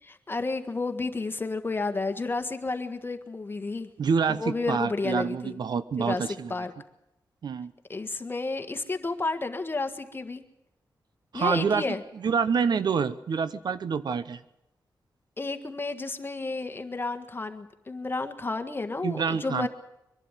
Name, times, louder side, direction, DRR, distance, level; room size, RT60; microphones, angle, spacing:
voice 1, 0.0-3.9 4.3-5.6 6.0-6.7 7.9-10.4 11.3-12.0 15.4-19.7, left 3 dB, 30° left, 8 dB, 1.6 m, -31 dB
voice 2, 4.0-6.5 7.4-7.7 11.3-11.8 12.2-14.4 19.0-19.7, right 6 dB, 70° right, 14 dB, 0.9 m, -27 dB
23.0 x 11.5 x 9.8 m, 0.87 s
wide cardioid pair, 95°, 8 cm